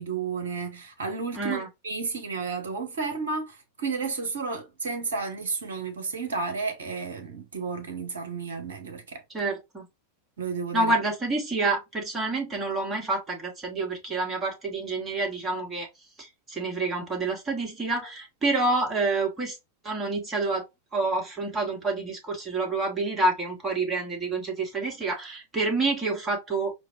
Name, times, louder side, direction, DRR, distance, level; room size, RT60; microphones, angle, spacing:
voice 1, 0.0-9.2 10.4-10.9, right 4 dB, 65° right, 0.7 m, -32 dB
voice 2, 1.3-1.7 9.3-9.9 10.7-15.9 16.2-19.6 19.8-20.7 20.9-26.7, right 3 dB, 15° right, 1.3 m, -28 dB
4.6 x 2.1 x 2.6 m
figure-of-eight pair, 90°, 0 cm